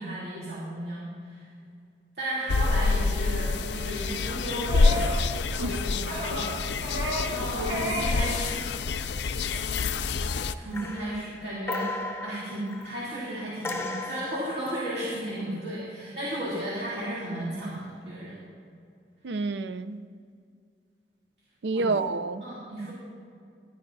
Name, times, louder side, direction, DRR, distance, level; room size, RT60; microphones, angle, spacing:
voice 1, 0.0-1.5 2.2-5.1 5.6-6.5 7.3-8.6 9.2-9.5 10.6-18.4 21.7-22.0 22.4-22.9, right 1 dB, 60° right, -8 dB, 2.9 m, -34 dB
sound 1, 2.5-10.5, left 4 dB, 85° left, 0.5 m, -27 dB
sound 2, 4.7-5.2 5.4-5.7 6.1-6.5 6.8-7.4 7.6-8.2 8.6-8.7, equal, 45° right, 2.5 m, -32 dB
sound 3, 9.1-9.5 9.8-10.3 10.7-13.1 13.6-14.8 17.7-18.0, left 2 dB, 15° left, 0.7 m, -37 dB
voice 2, 19.2-20.0 21.6-22.4, right 3 dB, 85° right, 12 dB, 0.5 m, -28 dB
21.0 x 11.0 x 2.7 m, 2.3 s
head